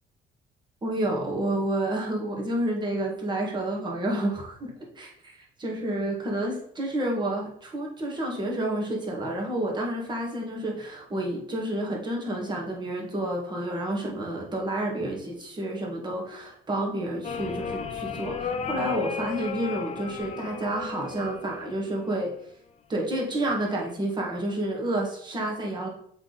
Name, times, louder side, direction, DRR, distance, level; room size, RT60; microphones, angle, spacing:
voice 1, 0.8-5.1 5.6-22.3 22.9-25.9, right 1 dB, 25° right, -1 dB, 1.9 m, -29 dB
sound 1, 17.2-22.3 23.4-23.9, left 7 dB, 40° left, 0.8 m, -35 dB
7.1 x 3.8 x 4.0 m, 0.66 s
cardioid pair, 110°, 17 cm